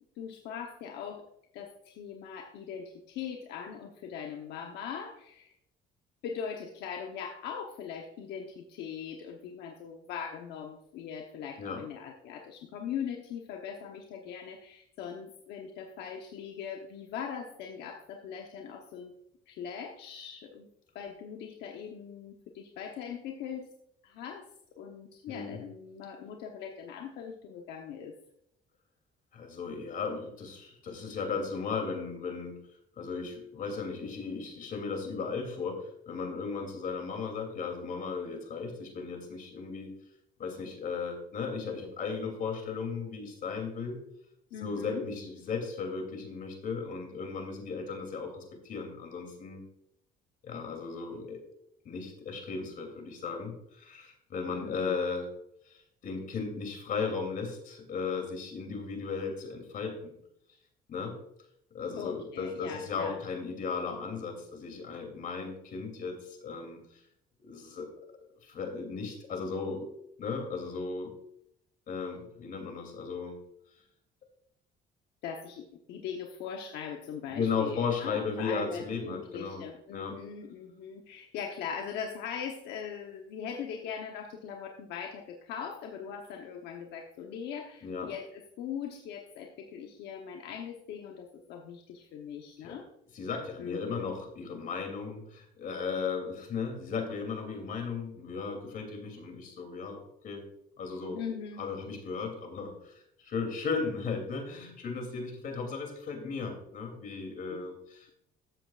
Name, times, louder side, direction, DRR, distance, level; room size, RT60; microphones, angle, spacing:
voice 1, 0.2-1.3 1.5-5.5 6.2-19.1 19.5-20.7 20.9-23.7 24.0-24.5 24.8-28.1 44.5-45.1 54.5-55.0 62.0-63.2 75.2-92.9 93.6-94.2 101.1-101.7 107.5-107.7, left 7 dB, 80° left, 2 dB, 1.0 m, -40 dB
voice 2, 25.3-25.6 29.3-32.6 33.0-39.9 40.4-44.0 44.6-49.6 50.4-51.4 51.8-55.3 55.6-60.1 60.9-61.2 61.7-67.0 67.4-67.9 68.4-69.9 70.2-71.1 71.9-73.4 77.3-79.6 79.9-80.2 87.8-88.1 92.6-92.8 93.1-100.5 100.8-101.2 101.6-108.1, left 5 dB, 55° left, 4 dB, 2.9 m, -36 dB
13.5 x 7.6 x 2.5 m, 0.75 s
cardioid pair, 110°, 17 cm